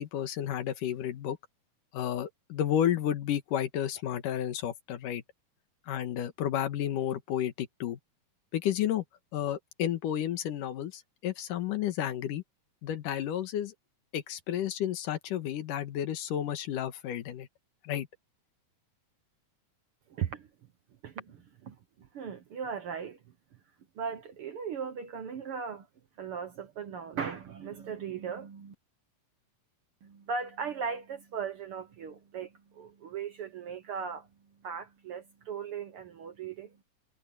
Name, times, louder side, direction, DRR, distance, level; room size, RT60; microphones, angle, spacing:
voice 1, 0.0-1.4 1.9-5.2 5.9-8.0 8.5-9.0 9.3-12.4 12.8-13.7 14.1-17.5 17.8-18.1, left 10 dB, 85° left, 3.0 m, -31 dB
voice 2, 20.1-20.5 21.0-23.2 24.0-25.9 26.2-28.7 30.0-34.3 34.6-36.7, right 6 dB, 60° right, 1.5 m, -38 dB
omnidirectional pair, 3.6 m